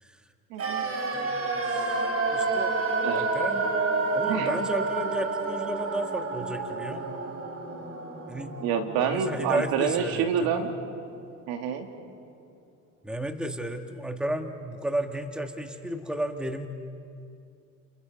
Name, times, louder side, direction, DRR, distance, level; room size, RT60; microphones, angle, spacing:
voice 1, 0.5-0.8 3.0-3.2 4.3-4.5 8.6-10.7 11.5-11.9, right 7 dB, 70° right, 4 dB, 2.8 m, -27 dB
sound 1, 0.6-10.5 10.8-10.9, right 3 dB, 40° right, 5.1 m, -29 dB
voice 2, 1.1-2.0 2.3-2.8 3.1-3.7 4.1-7.0 8.3-8.5 9.0-10.6 13.0-16.7, right 1 dB, ahead, 5 dB, 1.8 m, -33 dB
30.0 x 29.0 x 5.3 m, 2.4 s
hypercardioid pair, 80°, 38 cm